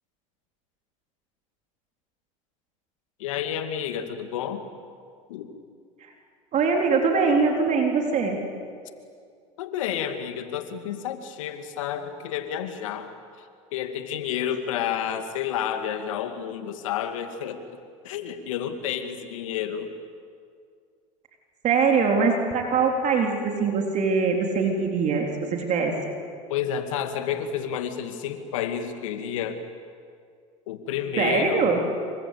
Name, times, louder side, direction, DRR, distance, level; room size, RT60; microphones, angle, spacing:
voice 1, 3.2-4.6 5.3-5.5 9.6-13.1 13.7-19.9 26.5-29.6 30.7-31.7, left 9 dB, 85° left, 7 dB, 2.3 m, -30 dB
voice 2, 6.5-8.4 21.6-25.9 31.2-31.8, right 5 dB, 50° right, 2 dB, 3.9 m, -22 dB
27.0 x 24.5 x 8.5 m, 2.2 s
hypercardioid pair, 85°, 16 cm